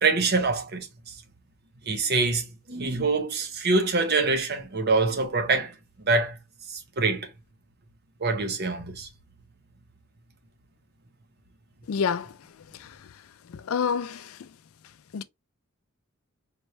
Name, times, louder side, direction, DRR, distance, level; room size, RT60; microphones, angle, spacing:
voice 1, 0.0-0.9 1.9-5.7 6.0-6.4 7.0-7.3 8.2-9.1, right 3 dB, 50° right, 0.9 m, -25 dB
voice 2, 11.9-12.4 12.7-13.1 13.5-14.5 15.1-15.2, left 6 dB, 75° left, 0.4 m, -29 dB
4.2 x 3.3 x 2.8 m
head